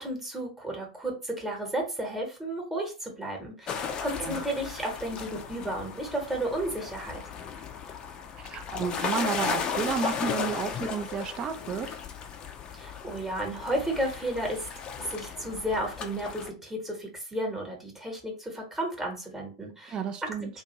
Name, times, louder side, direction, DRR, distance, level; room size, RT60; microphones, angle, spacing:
voice 1, 0.0-7.2 12.7-14.7 15.0-20.0 20.5-20.6, right 1 dB, 10° right, 1.1 m, -33 dB
sound 1, 3.7-16.5, left 6 dB, 30° left, 0.5 m, -35 dB
voice 2, 8.4-12.0 19.9-20.5, right 6 dB, 30° right, 0.4 m, -32 dB
2.5 x 2.5 x 3.0 m
figure-of-eight pair, 90°, 3 cm